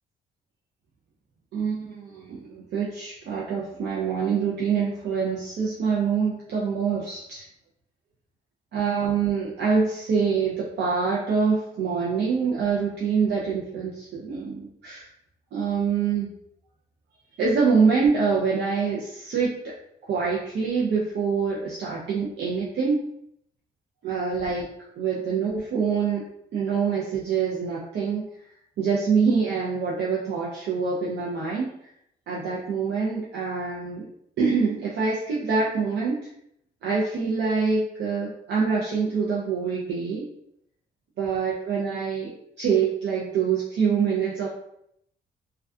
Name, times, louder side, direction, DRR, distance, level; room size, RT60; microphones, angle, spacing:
voice 1, 1.5-7.5 8.7-15.1 15.5-16.3 17.4-19.7 20.1-23.0 24.0-24.7 25.0-26.2 26.5-28.3 28.8-31.8 32.3-34.1 34.4-36.3 36.8-40.2 41.2-42.3 42.6-44.5, right 5 dB, 75° right, -4 dB, 0.5 m, -25 dB
2.5 x 2.2 x 2.3 m, 0.74 s
cardioid pair, 70°, 19 cm